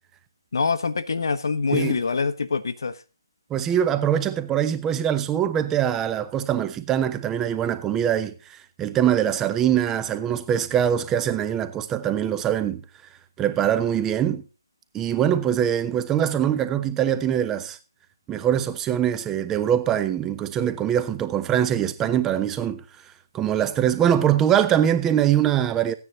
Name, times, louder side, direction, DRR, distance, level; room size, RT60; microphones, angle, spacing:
voice 1, 0.5-3.0, left 4 dB, 65° left, 1.1 m, -25 dB
voice 2, 3.5-12.8 13.4-14.4 14.9-17.8 18.3-22.8 23.3-25.9, right 10 dB, 15° right, 0.9 m, -23 dB
15.5 x 9.7 x 4.1 m
figure-of-eight pair, 145°, 2 cm